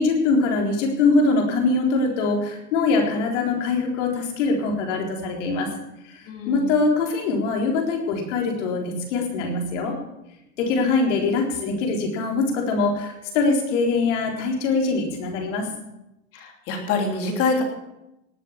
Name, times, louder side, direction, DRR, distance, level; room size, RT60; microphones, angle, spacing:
voice 1, 0.0-5.7 6.0-10.0 10.6-15.7, left 3 dB, 50° left, 2 dB, 4.0 m, -23 dB
voice 2, 6.3-6.7 16.3-17.6, left 4 dB, 30° left, 3 dB, 3.1 m, -25 dB
19.0 x 7.6 x 7.2 m, 0.91 s
supercardioid pair, 155°, 44 cm